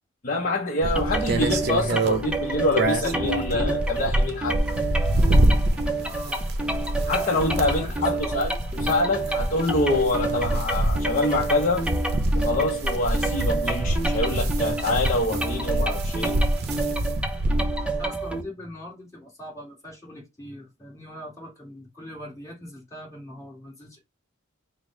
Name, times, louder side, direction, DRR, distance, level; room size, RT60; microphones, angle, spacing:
voice 1, 0.2-4.6 7.0-11.9 12.3-16.4, left 2 dB, 40° left, 0.6 m, -26 dB
sound 1, 0.8-18.0, right 1 dB, 50° right, 0.6 m, -26 dB
sound 2, 1.0-18.4, right 2 dB, 5° right, 0.5 m, -29 dB
voice 2, 6.0-6.4 7.6-8.4 18.0-24.0, left 1 dB, 15° left, 1.8 m, -41 dB
4.9 x 2.0 x 3.7 m
head